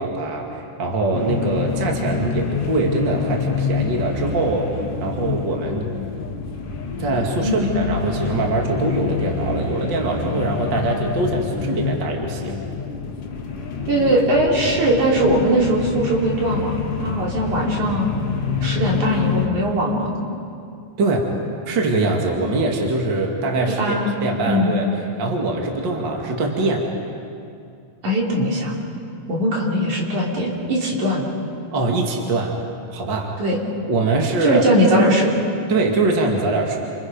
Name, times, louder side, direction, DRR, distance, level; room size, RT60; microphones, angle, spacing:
voice 1, 0.0-4.7 5.0-5.9 7.0-12.6 14.6-14.7 21.0-21.3 21.7-23.9 24.2-24.9 25.2-26.9 31.7-32.6 32.9-33.3 33.9-34.6 35.7-36.8, right 2 dB, 40° right, 0 dB, 2.5 m, -23 dB
sound 1, 1.1-19.5, left 5 dB, 50° left, 2.5 m, -27 dB
voice 2, 13.9-18.1 18.6-20.1 23.8-24.2 24.5-24.7 28.0-28.7 29.3-31.3 33.4-33.6 34.4-35.3, right 1 dB, 70° right, -2 dB, 4.6 m, -20 dB
29.5 x 27.5 x 5.3 m, 2.5 s
omnidirectional pair, 3.6 m